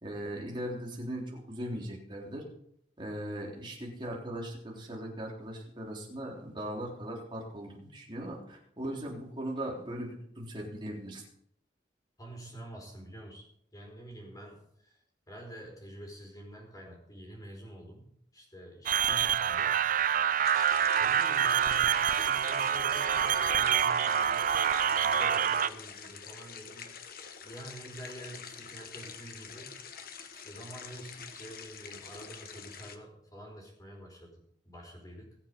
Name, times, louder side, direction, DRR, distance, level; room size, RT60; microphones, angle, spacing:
voice 1, 0.0-2.4 3.0-11.2, right 1 dB, 25° right, -2 dB, 3.7 m, -39 dB
voice 2, 12.2-13.5 13.7-15.0 15.3-19.8 21.0-26.9 27.4-29.8 30.3-35.4, right 1 dB, 20° left, 0 dB, 4.8 m, -47 dB
sound 1, 18.9-25.7, right 8 dB, 45° right, 0.4 m, -26 dB
sound 2, 20.4-33.0, left 6 dB, 50° left, 1.2 m, -46 dB
21.5 x 7.5 x 5.3 m, 0.70 s
head